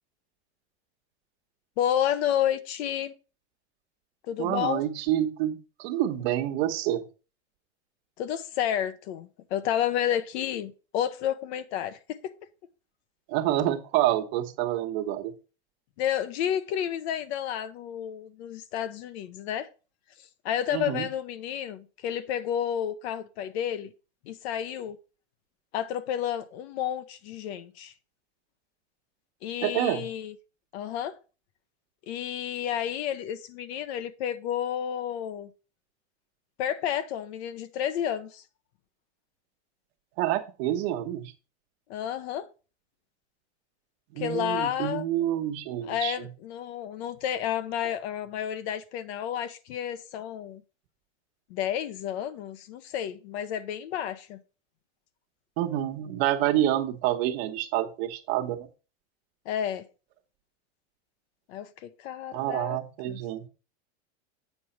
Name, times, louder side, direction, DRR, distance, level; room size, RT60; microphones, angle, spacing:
voice 1, 1.8-3.1 4.3-4.8 8.2-12.3 16.0-19.7 20.4-23.9 24.2-25.0 25.7-27.9 29.4-30.3 30.7-31.2 32.1-35.5 36.6-38.4 41.9-42.5 44.2-45.0 45.8-50.6 51.5-54.4 59.4-59.8 61.5-62.8 63.1-63.2, left 10 dB, 65° left, 1.0 m, -31 dB
voice 2, 4.4-7.0 13.3-15.3 20.7-21.1 29.6-30.1 40.2-41.3 44.1-46.3 55.6-58.7 62.3-63.5, right 13 dB, 60° right, 1.3 m, -28 dB
7.7 x 4.8 x 4.4 m
supercardioid pair, 125°, 35 cm